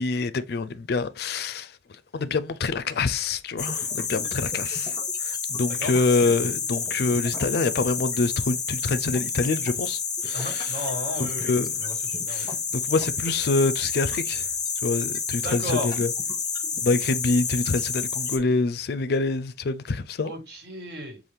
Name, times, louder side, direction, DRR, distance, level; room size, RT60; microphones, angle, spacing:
voice 1, 0.0-1.7 2.1-10.8 11.2-11.8 12.3-12.5 12.9-14.5 14.8-16.1 16.8-20.3, left 3 dB, 65° left, 0.4 m, -26 dB
sound 1, 3.6-18.4, left 5 dB, 20° left, 0.7 m, -29 dB
voice 2, 10.3-11.5 11.8-12.5 15.4-15.9 20.2-21.2, left 1 dB, 65° right, 1.8 m, -34 dB
5.7 x 2.4 x 3.3 m
head